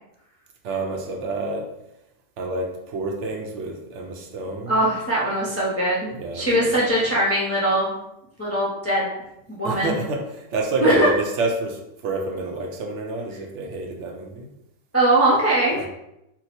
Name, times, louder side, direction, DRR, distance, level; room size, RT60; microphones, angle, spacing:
voice 1, 0.6-1.7 2.4-4.8 6.1-7.0 9.6-14.5 15.7-15.9, right 2 dB, 75° right, 1 dB, 0.9 m, -29 dB
voice 2, 4.7-7.9 8.4-9.1 9.5-10.0 10.8-11.1 14.9-15.9, right 1 dB, 20° left, -6 dB, 0.4 m, -21 dB
2.8 x 2.1 x 4.1 m, 0.86 s
omnidirectional pair, 1.3 m